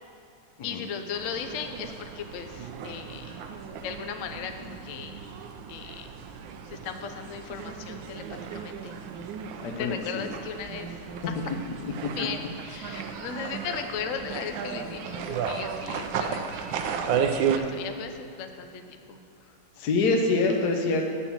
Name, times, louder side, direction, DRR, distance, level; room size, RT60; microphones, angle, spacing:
voice 1, 0.6-3.4 3.8-5.3 5.7-6.1 6.7-8.2 8.5-9.0 9.8-10.9 11.3-11.4 12.1-18.8 19.1-19.2, left 6 dB, 80° left, 6 dB, 0.7 m, -37 dB
sound 1, 1.1-17.6, right 7 dB, 70° right, 1.3 m, -34 dB
voice 2, 9.6-10.3 11.8-12.1 19.8-21.0, left 3 dB, 65° left, 2 dB, 1.1 m, -26 dB
8.6 x 7.1 x 7.1 m, 2.7 s
omnidirectional pair, 2.3 m